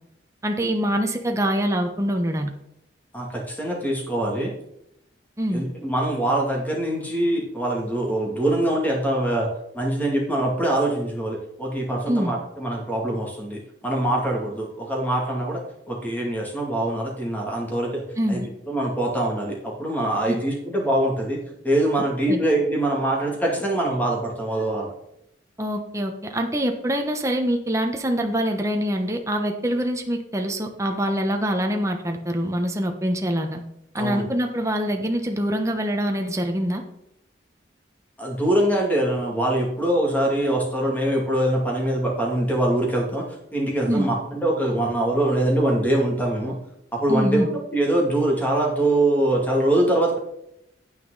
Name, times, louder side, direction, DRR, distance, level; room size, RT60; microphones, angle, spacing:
voice 1, 0.4-2.5 5.4-5.6 12.1-12.3 18.2-18.5 20.3-20.4 22.3-22.4 25.6-33.6 33.9-36.8 43.9-44.1 47.1-47.5, equal, 15° right, 4 dB, 1.0 m, -24 dB
voice 2, 3.1-4.5 5.5-9.5 9.7-15.6 15.9-18.0 18.3-18.4 18.7-24.9 34.0-34.2 38.2-43.3 43.5-46.6 46.9-50.2, right 1 dB, 10° left, -2 dB, 2.5 m, -23 dB
9.3 x 9.2 x 4.1 m, 0.79 s
head